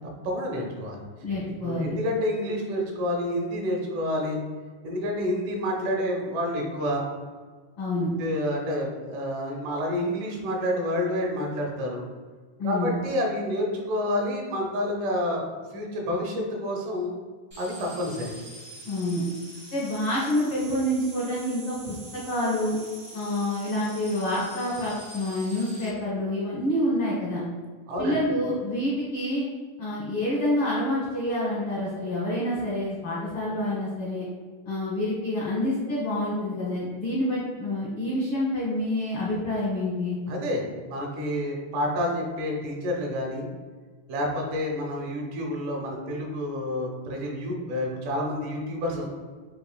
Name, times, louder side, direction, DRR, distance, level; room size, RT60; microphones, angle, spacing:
voice 1, 0.2-1.1 1.6-4.4 4.8-7.1 8.2-12.1 12.6-15.4 15.7-17.1 17.6-18.4 27.9-28.2 40.3-43.5 44.1-49.1, left 1 dB, 75° right, 0 dB, 2.2 m, -29 dB
voice 2, 1.2-2.0 7.8-8.1 12.6-12.9 18.8-19.2 19.7-22.8 23.1-27.4 28.0-29.4 29.8-34.3 34.7-40.2, left 1 dB, 75° left, -6 dB, 1.2 m, -27 dB
sound 1, 17.5-25.9, right 1 dB, 60° right, 0.5 m, -45 dB
8.0 x 2.7 x 2.2 m, 1.5 s
omnidirectional pair, 3.8 m